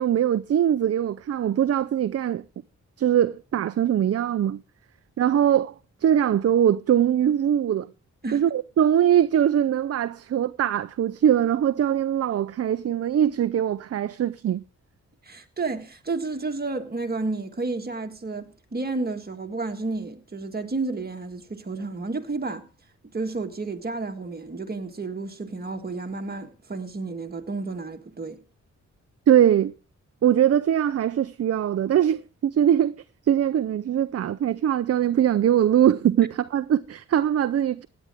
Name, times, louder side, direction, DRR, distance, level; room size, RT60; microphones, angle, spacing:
voice 1, 0.0-2.4 3.0-4.6 5.2-5.7 6.0-7.9 8.3-14.6 29.3-29.7 30.2-32.9 33.3-37.9, right 10 dB, 55° right, 0.5 m, -22 dB
voice 2, 15.2-22.6 23.1-28.4, right 3 dB, 30° right, 1.7 m, -31 dB
16.5 x 9.8 x 3.5 m
wide cardioid pair, 100°, 30 cm